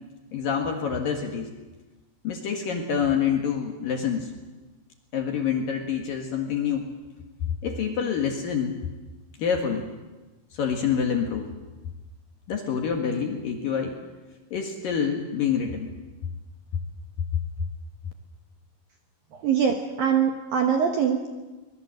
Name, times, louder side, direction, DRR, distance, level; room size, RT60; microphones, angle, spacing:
voice 1, 0.3-1.5 2.2-4.3 5.1-6.9 7.6-8.8 9.4-9.9 10.5-11.5 12.5-14.0 14.5-15.9, left 7 dB, 60° left, 3 dB, 2.7 m, -27 dB
voice 2, 19.3-21.3, right 7 dB, 65° right, 3 dB, 2.4 m, -23 dB
24.5 x 20.5 x 7.8 m, 1.2 s
omnidirectional pair, 5.8 m